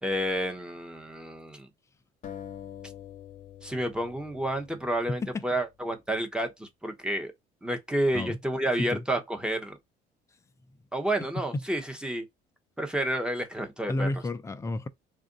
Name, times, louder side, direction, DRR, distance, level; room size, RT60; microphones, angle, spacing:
voice 1, 0.0-1.7 3.6-7.3 7.6-9.8 10.9-12.2 12.8-14.1, right 1 dB, 5° right, 0.9 m, -30 dB
sound 1, 2.2-5.5, left 9 dB, 45° left, 0.8 m, -45 dB
voice 2, 5.1-5.4 8.1-8.4 8.8-9.0 11.4-11.6 13.9-14.9, left 2 dB, 15° left, 0.4 m, -31 dB
3.5 x 2.5 x 3.8 m
cardioid pair, 100°, 19 cm